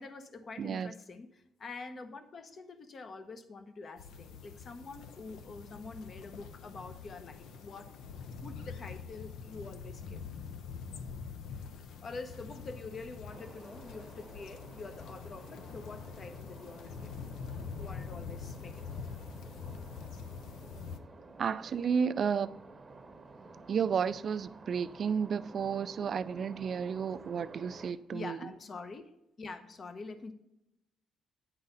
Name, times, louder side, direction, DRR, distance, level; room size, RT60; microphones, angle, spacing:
voice 1, 0.0-8.0 8.4-10.2 12.0-17.1 17.5-18.9 28.1-30.3, left 3 dB, 45° left, 0.9 m, -46 dB
voice 2, 0.6-0.9 21.4-22.6 23.7-28.4, right 6 dB, 55° right, 0.3 m, -32 dB
sound 1, 4.0-21.0, left 6 dB, 80° left, 0.6 m, -45 dB
sound 2, 13.3-27.9, right 3 dB, 30° right, 0.8 m, -52 dB
9.8 x 3.9 x 5.4 m
cardioid pair, 90°, 0 cm